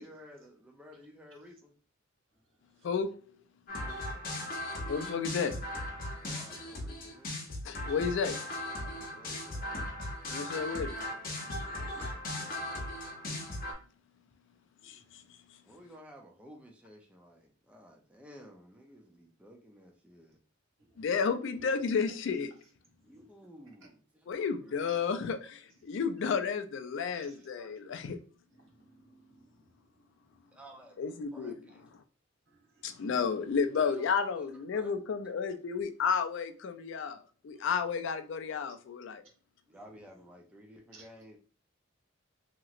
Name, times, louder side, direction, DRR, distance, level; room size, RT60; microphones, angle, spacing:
voice 1, 0.0-1.7 3.8-4.2 6.2-7.4 9.0-9.7 15.6-20.4 23.0-24.9 27.2-27.7 30.5-31.0 31.3-31.8 33.8-35.0 39.7-41.4, equal, 5° right, 0.4 m, -54 dB
sound 1, 3.7-13.7, left 1 dB, 45° left, 0.8 m, -38 dB
voice 2, 4.9-5.5 7.6-8.4 10.3-10.9 14.8-15.2 21.0-22.5 24.3-28.2 31.0-31.6 32.8-39.2, left 6 dB, 65° left, 0.4 m, -32 dB
voice 3, 11.6-12.1 24.9-25.0 27.2-27.3 28.6-29.5 32.5-32.9 37.5-37.7 40.9-41.0, right 2 dB, 70° right, 1.1 m, -56 dB
2.9 x 2.9 x 2.4 m
head